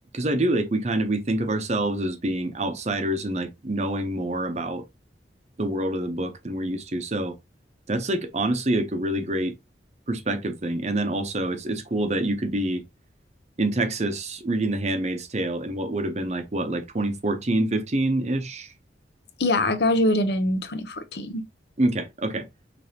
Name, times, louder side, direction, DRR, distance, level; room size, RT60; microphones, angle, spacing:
voice 1, 0.1-4.8 5.6-7.4 7.9-9.5 10.1-12.8 13.6-18.7 21.8-22.5, right 1 dB, 40° right, 0.8 m, -26 dB
voice 2, 19.4-21.4, left 1 dB, 65° left, 0.8 m, -23 dB
5.1 x 3.4 x 2.9 m
head